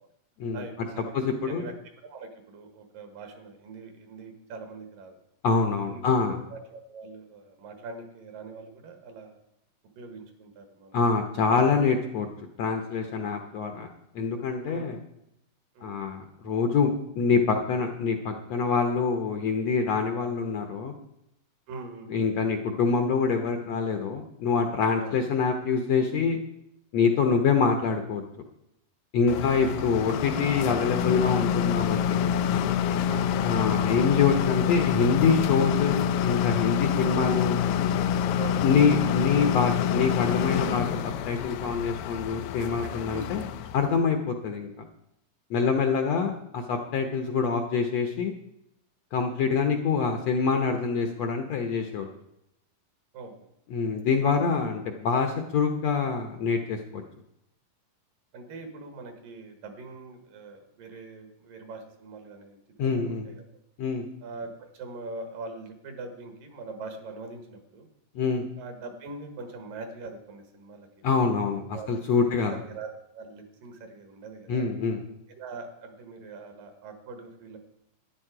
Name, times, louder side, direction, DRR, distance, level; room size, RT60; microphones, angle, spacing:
voice 1, 0.5-1.1 1.5-1.7 2.0-5.2 5.9-9.4 10.0-11.2 14.7-14.9 15.7-16.0 21.7-22.1 25.0-25.1 27.3-27.5 29.3-29.5 33.1-33.3 38.4-38.6 43.0-43.2 45.6-45.9 49.1-49.4 53.1-53.3 58.3-63.4 64.2-67.9 68.6-70.9 71.7-71.9 72.2-72.4 72.7-74.7 75.3-77.6, right 3 dB, 75° right, 6 dB, 3.2 m, -42 dB
voice 2, 1.1-1.6 5.4-6.4 10.9-12.3 12.6-13.9 14.1-15.0 15.8-20.9 22.1-26.4 26.9-28.2 29.1-32.3 33.4-37.6 38.6-43.5 43.7-44.8 45.5-48.3 49.1-52.1 53.7-57.0 62.8-63.3 63.8-64.0 68.1-68.5 71.0-72.5 74.5-75.0, left 5 dB, 70° left, 5 dB, 1.6 m, -25 dB
sound 1, 29.3-44.0, left 8 dB, 85° left, 1.6 m, -27 dB
13.0 x 9.9 x 4.9 m, 0.82 s
omnidirectional pair, 4.0 m